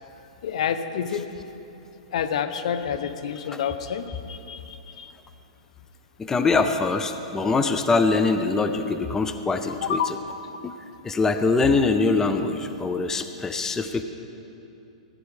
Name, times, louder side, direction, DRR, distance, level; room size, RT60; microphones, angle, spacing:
voice 1, 0.4-1.3 2.1-5.1 9.8-10.1, left 8 dB, 70° left, 10 dB, 0.8 m, -28 dB
voice 2, 6.2-10.2 10.6-10.7 11.0-14.0, left 3 dB, 10° left, 8 dB, 0.5 m, -23 dB
15.0 x 9.8 x 4.9 m, 2.9 s
hypercardioid pair, 130°, 4 cm